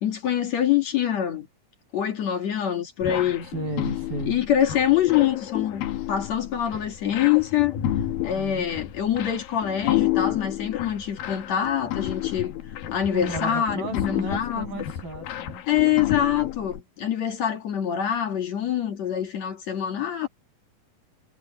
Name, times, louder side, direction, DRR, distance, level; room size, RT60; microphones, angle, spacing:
voice 1, 0.0-1.5 1.9-3.5 4.3-7.7 8.2-12.5 12.9-14.8 15.7-20.3, left 10 dB, 55° left, 3.1 m, -25 dB
sound 1, 3.0-16.8, left 12 dB, 85° left, 3.2 m, -31 dB
voice 2, 3.5-4.4 8.3-8.7 13.1-15.6, right 2 dB, 85° right, 8.8 m, -33 dB
omnidirectional pair, 4.0 m